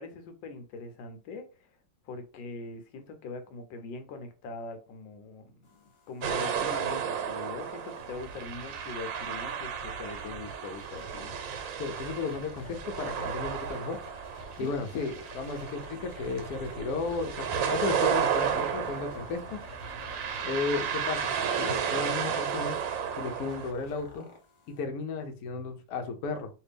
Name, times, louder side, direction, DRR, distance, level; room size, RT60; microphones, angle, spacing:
voice 1, 0.0-1.8 2.0-11.3 14.6-14.7, left 3 dB, 80° left, 7 dB, 1.4 m, -42 dB
sound 1, 5.6-24.8, left 2 dB, 45° left, 0.4 m, -52 dB
sound 2, 6.2-23.7, right 7 dB, 85° right, 1.4 m, -33 dB
voice 2, 11.8-14.0 14.6-19.6 20.4-22.8 23.2-24.3 24.7-26.5, left 4 dB, 65° left, 5 dB, 1.0 m, -34 dB
sound 3, 16.3-24.2, equal, 65° right, 0.7 m, -52 dB
3.3 x 2.5 x 3.3 m, 0.33 s
omnidirectional pair, 2.0 m